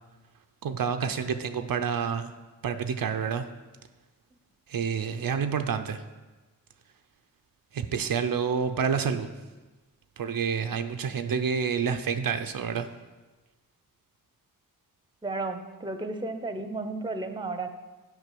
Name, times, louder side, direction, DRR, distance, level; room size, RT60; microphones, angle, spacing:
voice 1, 0.6-2.3 2.6-3.5 4.7-6.0 7.7-9.3 10.2-12.9, right 6 dB, 75° right, 8 dB, 0.6 m, -28 dB
voice 2, 15.2-17.7, right 3 dB, 15° right, 8 dB, 0.8 m, -33 dB
7.9 x 5.3 x 6.8 m, 1.2 s
wide cardioid pair, 65°, 34 cm